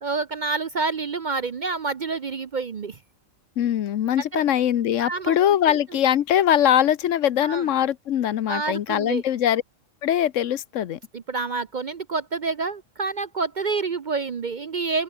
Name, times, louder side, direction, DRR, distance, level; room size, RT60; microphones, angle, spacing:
voice 1, 0.0-3.0 4.3-4.4 5.0-5.4 5.7-5.8 7.4-7.7 8.5-9.2 11.1-15.0, right 4 dB, 45° right, 0.7 m, -28 dB
voice 2, 3.6-9.6 10.0-11.0, left 10 dB, 70° left, 1.1 m, -22 dB
open air
omnidirectional pair, 1.4 m